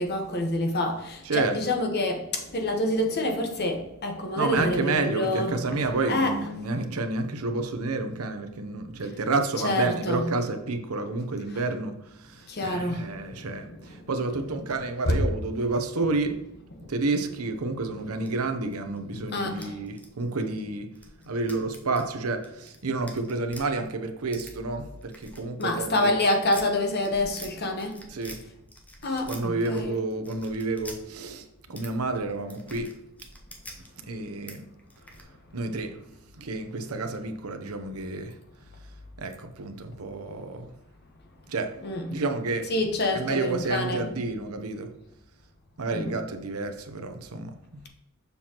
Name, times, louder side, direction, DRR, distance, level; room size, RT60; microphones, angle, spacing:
voice 1, 0.0-6.4 9.0-9.2 9.6-10.3 11.5-11.7 12.5-14.6 15.0-15.2 16.3-16.4 16.7-17.4 19.3-19.8 20.4-20.6 21.3-21.4 25.6-28.0 29.0-30.0 41.8-42.2 42.7-44.1 45.9-46.2, left 1 dB, 45° left, 3 dB, 1.1 m, -28 dB
voice 2, 1.2-1.6 4.4-16.4 16.9-20.9 21.3-26.2 28.1-28.4 29.3-32.9 34.0-34.6 35.5-36.0 36.3-38.4 39.2-40.7 41.5-41.7 42.1-42.7 43.1-44.9 45.8-47.8, right 3 dB, 85° right, 7 dB, 0.8 m, -30 dB
sound 1, 18.2-19.0 19.4-23.6 24.3-24.5 25.0-27.5 27.8-28.4 28.7-29.8 30.1-31.0 31.7-31.9 32.1-33.9 34.5-34.6 34.8-35.2, left 1 dB, 5° left, 0.9 m, -46 dB
6.9 x 5.8 x 3.0 m, 0.87 s
head